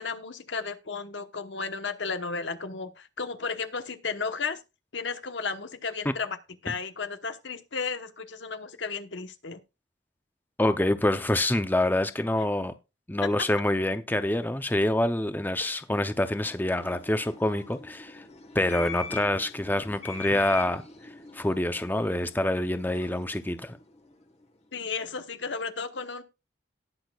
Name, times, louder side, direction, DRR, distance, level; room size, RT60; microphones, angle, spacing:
voice 1, 0.0-4.6 4.9-6.4 6.6-9.6 12.4-12.5 24.7-26.2, left 5 dB, 80° left, 1.1 m, -34 dB
voice 2, 10.6-12.7 13.1-18.2 18.5-20.8 21.3-23.8, left 1 dB, 10° left, 0.6 m, -26 dB
sound 1, 16.1-24.5, left 5 dB, 35° left, 1.3 m, -43 dB
18.5 x 6.2 x 2.4 m
head